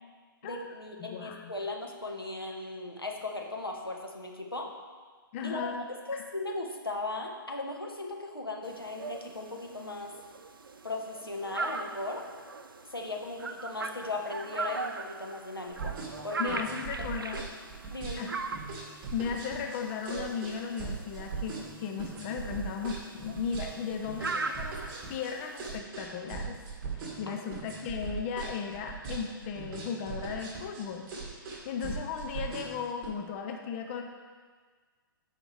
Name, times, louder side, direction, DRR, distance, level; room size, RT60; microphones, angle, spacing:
voice 1, 0.4-4.7 5.4-5.8 6.1-10.1 10.8-12.2 12.9-15.9 16.2-16.6 17.9-18.3 27.3-27.5, left 2 dB, 90° left, 1 dB, 1.2 m, -37 dB
voice 2, 1.0-1.5 5.3-5.8 16.4-17.5 18.2-18.4 19.1-26.6 26.9-34.0, left 6 dB, 35° left, 3 dB, 0.7 m, -36 dB
sound 1, 8.6-25.8, right 4 dB, 70° right, 0.6 m, -40 dB
sound 2, 15.7-33.1, right 5 dB, 30° right, 2.0 m, -39 dB
13.5 x 5.0 x 3.4 m, 1.5 s
figure-of-eight pair, 120°, 12 cm